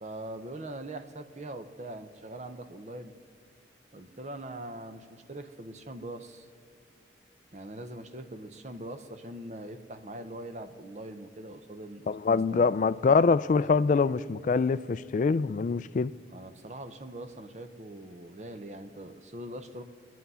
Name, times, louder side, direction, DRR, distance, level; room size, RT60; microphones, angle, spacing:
voice 1, 0.0-3.1 3.9-6.5 7.5-12.7 16.3-19.8, right 1 dB, 40° right, 0.8 m, -42 dB
voice 2, 12.1-16.1, left 4 dB, 45° left, 0.3 m, -24 dB
22.0 x 9.3 x 5.6 m
head